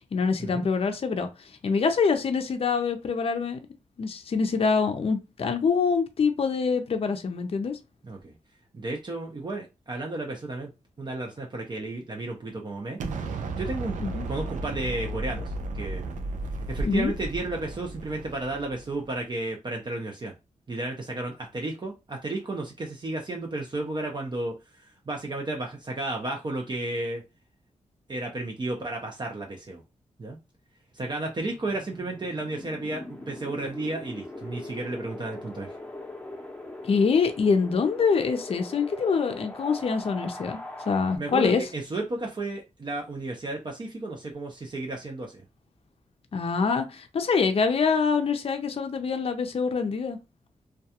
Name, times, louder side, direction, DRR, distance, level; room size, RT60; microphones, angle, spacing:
voice 1, 0.1-3.6 4.0-7.8 14.0-14.3 16.8-17.1 36.8-40.6 40.9-41.6 46.3-50.2, left 5 dB, 50° left, 0.5 m, -25 dB
voice 2, 8.7-10.7 11.0-13.0 13.6-14.0 14.3-16.1 16.7-20.3 20.7-27.2 28.1-29.8 30.2-30.4 30.9-35.8 41.2-45.4, right 2 dB, 35° right, 0.5 m, -33 dB
Explosion, 13.0-19.0, right 2 dB, 90° right, 0.4 m, -34 dB
Wind, 31.0-41.2, left 1 dB, 15° left, 0.7 m, -41 dB
2.3 x 2.2 x 2.7 m
cardioid pair, 60°, 12 cm